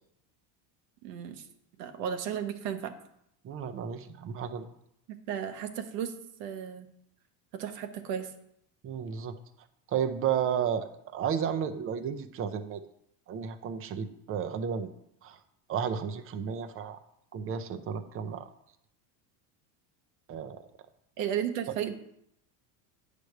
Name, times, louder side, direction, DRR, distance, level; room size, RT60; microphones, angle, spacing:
voice 1, 1.0-1.4 1.8-2.9 5.1-6.1 6.4-6.9 7.5-8.3 21.2-21.9, right 9 dB, 90° right, 7 dB, 1.0 m, -34 dB
voice 2, 3.4-4.7 8.8-9.4 9.9-12.8 13.3-14.9 15.2-15.4 15.7-17.0 17.3-18.5 20.3-20.6, right 8 dB, 30° right, 10 dB, 0.5 m, -32 dB
9.2 x 3.3 x 6.4 m, 0.76 s
cardioid pair, 135°, 47 cm